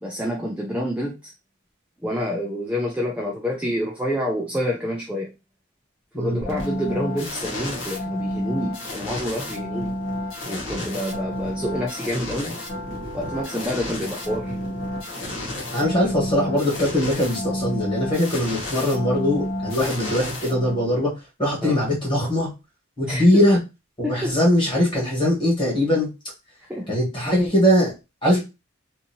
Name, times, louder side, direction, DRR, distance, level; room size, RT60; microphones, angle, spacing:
voice 1, 0.0-1.3 2.0-5.3 6.2-9.9 10.4-12.6 13.1-14.5 21.6-21.8 23.1-23.3 24.0-24.4 26.7-27.0, equal, 5° right, -2 dB, 0.4 m, -28 dB
sound 1, 6.4-21.0, left 1 dB, 75° left, 1.0 m, -30 dB
voice 2, 15.7-21.1 21.4-22.5 23.0-23.6 24.0-26.1 26.9-27.9 28.2-28.4, left 1 dB, 25° left, -4 dB, 1.3 m, -21 dB
2.7 x 2.6 x 2.7 m, 0.26 s
head